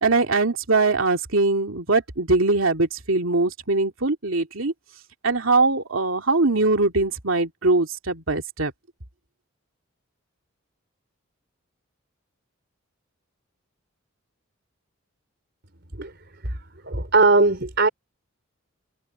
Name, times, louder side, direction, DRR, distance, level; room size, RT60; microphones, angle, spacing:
voice 1, 0.0-4.7 5.2-8.7, right 3 dB, 70° right, 2.7 m, -22 dB
voice 2, 16.9-17.9, right 3 dB, 55° right, 4.6 m, -19 dB
head